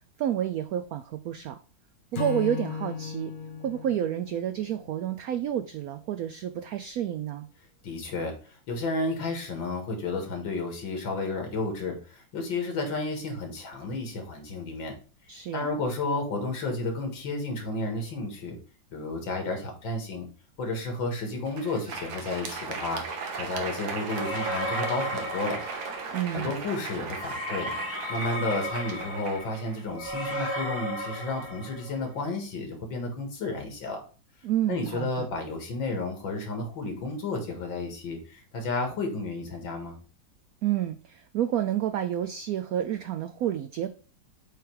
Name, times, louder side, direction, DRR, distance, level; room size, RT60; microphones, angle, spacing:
voice 1, 0.2-1.6 2.1-3.3 3.6-7.5 15.3-15.7 26.1-26.5 34.4-35.3 40.6-43.9, right 11 dB, 85° right, 10 dB, 0.7 m, -29 dB
Acoustic guitar / Strum, 2.1-5.5, left 6 dB, 60° left, 0.5 m, -36 dB
voice 2, 7.8-14.9 15.5-18.6 18.9-20.3 20.6-25.6 26.3-27.7 28.1-34.0 34.7-40.0, left 2 dB, 85° left, 3 dB, 2.5 m, -32 dB
Crowd, 21.3-30.3, right 4 dB, 60° right, 1.3 m, -37 dB
sound 1, 24.1-26.3 27.1-32.0, equal, 40° left, 2.8 m, -34 dB
7.8 x 3.4 x 4.6 m, 0.36 s
omnidirectional pair, 2.1 m